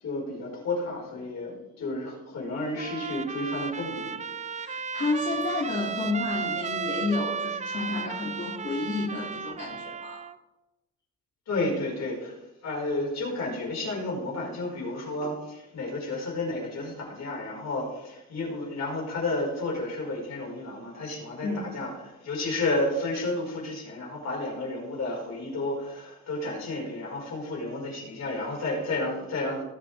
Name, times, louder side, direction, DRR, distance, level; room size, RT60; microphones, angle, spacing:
voice 1, 0.0-4.2 11.5-12.4 12.6-29.6, left 2 dB, 60° left, -2 dB, 4.7 m, -31 dB
Trumpet, 2.8-10.4, right 6 dB, 25° right, 0.5 m, -34 dB
voice 2, 4.5-10.2 21.4-21.7, left 3 dB, 35° left, -4 dB, 2.4 m, -31 dB
18.5 x 7.6 x 3.4 m, 1.0 s
cardioid pair, 90°, 30 cm